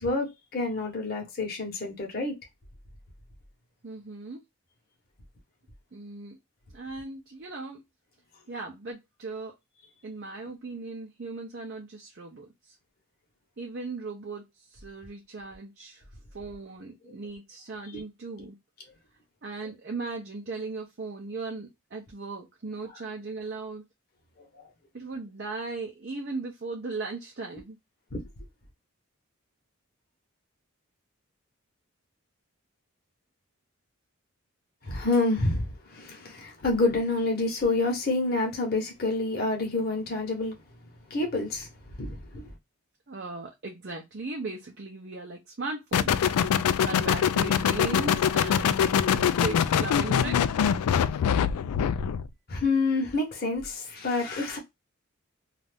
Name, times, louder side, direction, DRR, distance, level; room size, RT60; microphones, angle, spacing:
voice 1, 0.0-2.3 17.9-18.0 24.4-24.6 28.1-28.2 34.8-40.6 41.1-42.5 52.5-54.6, left 2 dB, 45° left, 1.0 m, -28 dB
voice 2, 3.8-4.4 5.9-6.4 6.7-7.8 8.5-9.5 10.0-12.8 13.6-16.1 16.3-18.6 19.4-23.9 24.9-27.8 43.1-46.2 46.8-50.7, right 3 dB, 45° right, 0.6 m, -37 dB
sound 1, 45.9-52.3, left 8 dB, 90° left, 0.3 m, -24 dB
2.6 x 2.4 x 3.3 m
head